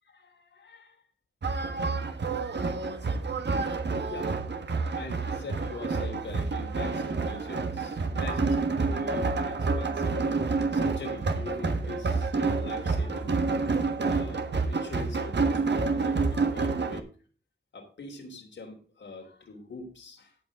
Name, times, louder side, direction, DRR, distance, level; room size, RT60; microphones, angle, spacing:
voice 1, 0.0-1.0 4.0-4.4 4.9-10.2 10.7-13.4 14.0-17.1 17.7-20.4, left 3 dB, 90° left, 2 dB, 3.3 m, -43 dB
sound 1, 1.4-17.0, right 4 dB, 70° right, 1.4 m, -28 dB
17.0 x 5.9 x 3.6 m, 0.38 s
cardioid pair, 60°, 19 cm